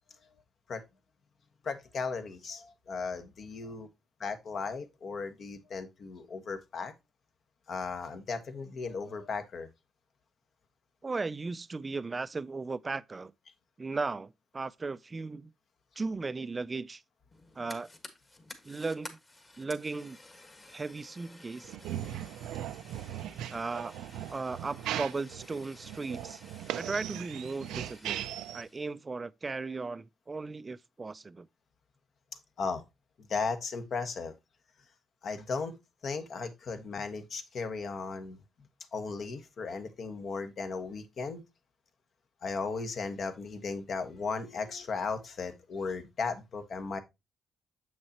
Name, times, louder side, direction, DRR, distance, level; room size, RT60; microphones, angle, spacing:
voice 1, 1.6-3.9 4.2-6.9 7.7-9.7 32.6-32.8 33.3-34.3 35.2-35.8 36.0-38.4 38.9-41.4 42.4-47.0, left 4 dB, 55° left, 1.2 m, -36 dB
voice 2, 11.0-13.3 13.8-15.5 16.0-17.0 17.6-17.9 18.6-19.2 19.6-20.2 20.7-21.7 23.5-23.9 24.3-26.4 26.7-28.3 28.5-31.5, right 3 dB, 25° right, 0.4 m, -36 dB
Fire, 17.3-28.9, left 2 dB, 25° left, 1.5 m, -53 dB
sound 1, 21.6-28.6, right 12 dB, 90° right, 0.4 m, -38 dB
7.3 x 6.4 x 2.8 m
cardioid pair, 90°, 0 cm